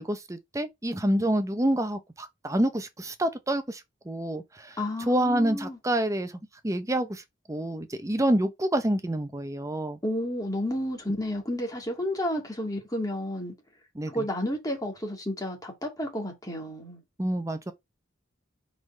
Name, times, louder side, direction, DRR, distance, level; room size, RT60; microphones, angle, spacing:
voice 1, 0.0-6.3 6.6-7.2 7.5-10.0 13.9-14.3 17.2-17.7, right 1 dB, 15° right, 0.7 m, -27 dB
voice 2, 4.8-5.8 10.0-13.5 14.1-17.0, left 1 dB, 20° left, 2.1 m, -31 dB
4.8 x 4.0 x 5.4 m
head